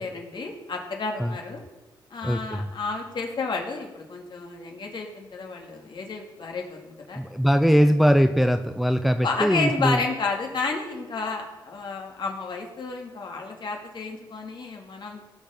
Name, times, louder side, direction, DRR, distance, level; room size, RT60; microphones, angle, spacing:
voice 1, 0.0-1.6 2.1-7.2 9.2-15.2, left 4 dB, 60° left, 1 dB, 2.5 m, -31 dB
voice 2, 2.2-2.7 7.1-10.0, equal, ahead, 8 dB, 0.6 m, -21 dB
17.5 x 7.1 x 5.3 m, 1.1 s
cardioid pair, 95°, 9 cm